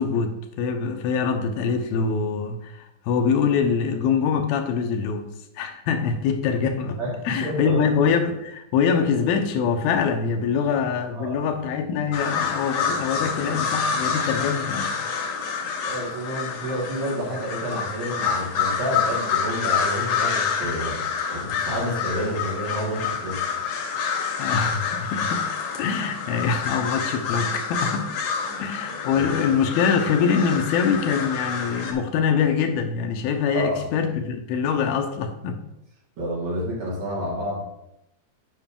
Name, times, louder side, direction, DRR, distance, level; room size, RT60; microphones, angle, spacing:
voice 1, 0.0-5.3 5.6-7.0 7.3-15.1 24.4-25.5 25.8-28.1 28.6-35.6, left 6 dB, 80° left, 2.6 m, -24 dB
voice 2, 7.0-7.8 11.1-11.4 14.4-14.5 15.8-21.0 21.3-23.4 28.5-28.6 29.1-29.3 33.5-33.9 36.2-37.6, equal, 50° right, 3.0 m, -29 dB
sound 1, 12.1-31.9, left 6 dB, 65° left, 1.9 m, -27 dB
9.5 x 5.6 x 3.6 m
omnidirectional pair, 4.3 m